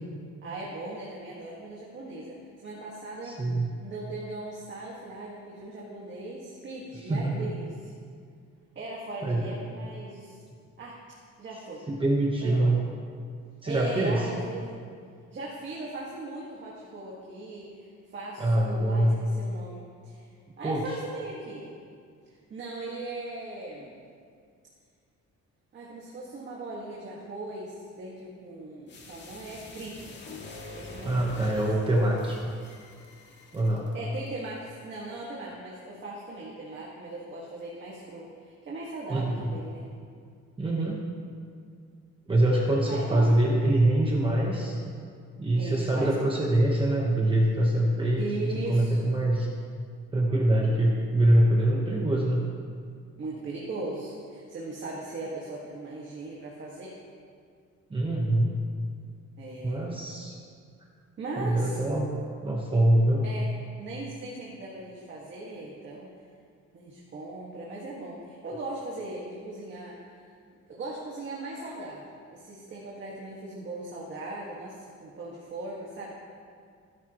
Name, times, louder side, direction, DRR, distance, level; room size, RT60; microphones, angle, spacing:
voice 1, 0.4-3.4 3.8-7.9 8.8-10.4 10.8-11.0 11.4-11.9 12.4-12.8 13.6-14.8 15.3-20.3 20.6-21.7 22.5-24.0 25.7-30.0 30.7-31.6 33.9-39.9 42.9-43.6 45.5-46.2 48.2-49.1 53.2-57.0 59.4-59.8 61.2-61.8 63.2-63.5 63.8-66.1 66.7-70.3 70.7-76.1, right 2 dB, 40° right, -4 dB, 1.9 m, -39 dB
voice 2, 3.2-3.7 6.9-7.5 9.2-9.5 11.9-12.8 13.6-14.3 18.4-19.2 20.6-21.0 31.0-32.4 33.5-33.9 39.1-39.5 40.6-41.0 42.3-44.8 45.4-49.5 50.1-52.4 57.9-58.6 59.6-60.4 61.4-62.1 62.4-63.2, right 1 dB, 15° right, -2 dB, 1.2 m, -24 dB
sound 1, 28.9-33.9 34.3-34.4, left 2 dB, 35° left, 2.0 m, -44 dB
29.5 x 11.0 x 3.1 m, 2.2 s
cardioid pair, 170°, 29 cm